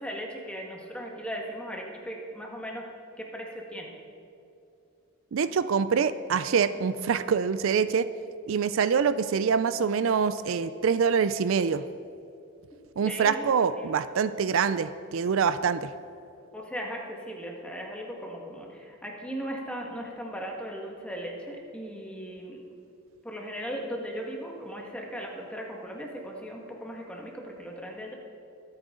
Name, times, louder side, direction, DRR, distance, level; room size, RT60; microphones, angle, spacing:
voice 1, 0.0-2.9 3.2-3.9 13.0-13.5 13.8-13.9 16.5-22.6 23.2-28.1, equal, 5° left, 0 dB, 1.6 m, -37 dB
voice 2, 5.3-8.1 8.5-11.8 13.0-15.9, right 6 dB, 65° right, 13 dB, 0.4 m, -25 dB
22.5 x 8.9 x 3.8 m, 2.6 s
head